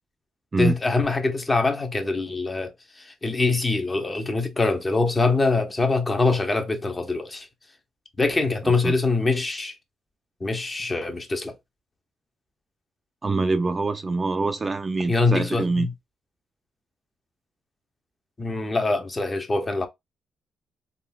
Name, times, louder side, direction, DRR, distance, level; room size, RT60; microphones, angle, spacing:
voice 1, 0.6-7.5 8.2-9.7 10.4-11.5 15.1-15.9 18.4-19.9, left 3 dB, 25° left, 0.7 m, -24 dB
voice 2, 13.2-15.9, right 3 dB, 30° right, 0.3 m, -24 dB
3.7 x 2.3 x 2.2 m
cardioid pair, 90°, 0 cm